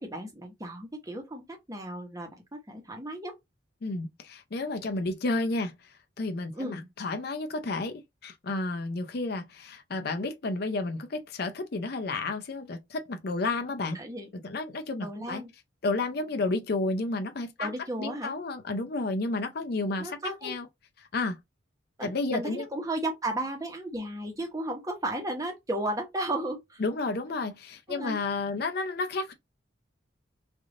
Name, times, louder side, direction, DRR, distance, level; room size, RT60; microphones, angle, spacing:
voice 1, 0.0-3.4 6.5-6.9 13.9-14.3 15.0-15.5 17.6-18.3 20.0-20.6 22.0-26.8 27.9-28.2, right 1 dB, 15° right, 0.9 m, -34 dB
voice 2, 3.8-5.7 6.2-14.0 14.4-15.4 15.8-17.7 18.0-20.7 21.1-21.4 22.0-22.7 26.8-29.3, left 3 dB, 50° left, 0.5 m, -31 dB
3.4 x 2.5 x 3.7 m
head